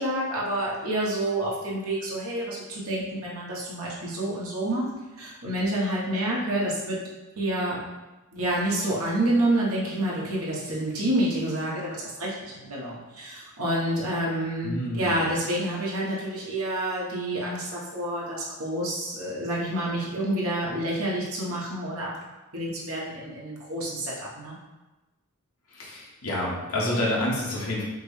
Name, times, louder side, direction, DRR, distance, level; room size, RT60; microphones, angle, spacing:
voice 1, 0.0-4.8 5.2-7.0 7.4-7.8 8.3-22.1 22.5-24.5, right 1 dB, 80° right, -5 dB, 1.2 m, -28 dB
voice 2, 14.6-15.3 25.7-27.8, left 1 dB, 85° left, -4 dB, 1.2 m, -28 dB
5.9 x 2.1 x 3.2 m, 1.1 s
head